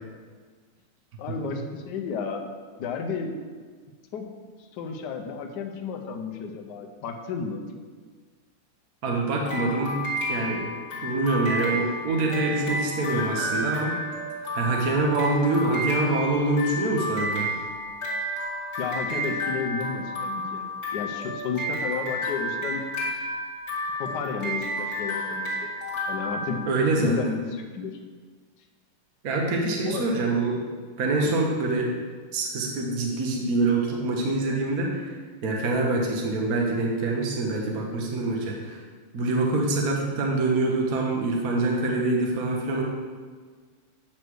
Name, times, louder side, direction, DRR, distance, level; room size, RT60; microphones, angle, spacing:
voice 1, 1.2-2.4 2.8-3.3 4.1-4.2 4.7-7.6 18.8-20.6 20.9-22.8 24.0-25.7 26.1-26.6 27.0-27.9 29.8-30.1 31.2-31.3, left 5 dB, 65° left, 3 dB, 1.2 m, -32 dB
voice 2, 9.0-10.0 10.3-10.7 11.0-14.0 14.5-17.5 26.7-27.1 29.2-30.6 31.0-31.9 32.3-35.2 35.4-38.8 39.1-42.8, right 2 dB, 50° right, -1 dB, 1.2 m, -25 dB
sound 1, 9.5-27.1, equal, 30° left, 2.4 m, -31 dB
9.1 x 3.3 x 6.2 m, 1.6 s
omnidirectional pair, 2.4 m